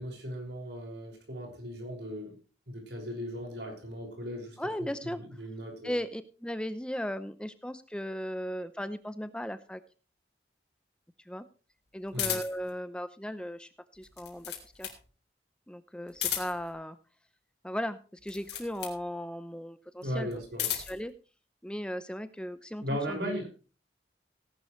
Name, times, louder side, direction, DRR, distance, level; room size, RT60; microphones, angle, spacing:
voice 1, 0.0-2.3 2.7-6.0 12.1-12.4 20.0-20.7 22.8-23.5, equal, 75° right, 2 dB, 5.6 m, -37 dB
voice 2, 4.6-5.2 5.8-9.8 11.3-11.4 11.9-14.9 15.7-17.0 17.6-20.4 20.7-21.1 21.6-23.4, equal, 5° left, 12 dB, 0.6 m, -37 dB
sound 1, 12.1-12.7 14.0-15.0 16.1-16.7 18.2-19.0 20.3-21.0, left 10 dB, 75° left, 3.6 m, -34 dB
18.0 x 11.5 x 3.2 m, 0.34 s
head